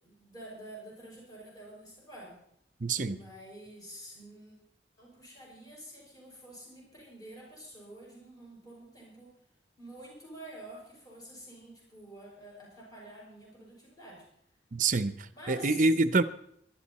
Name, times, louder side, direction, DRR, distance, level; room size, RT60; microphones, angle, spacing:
voice 1, 0.0-2.4 3.0-4.6 5.0-9.3 9.8-14.3 15.3-15.9, right 1 dB, 20° left, 5.8 m, -48 dB
voice 2, 2.8-3.2 14.7-15.1 15.5-16.2, right 3 dB, 45° right, 0.7 m, -25 dB
23.5 x 11.5 x 4.2 m
head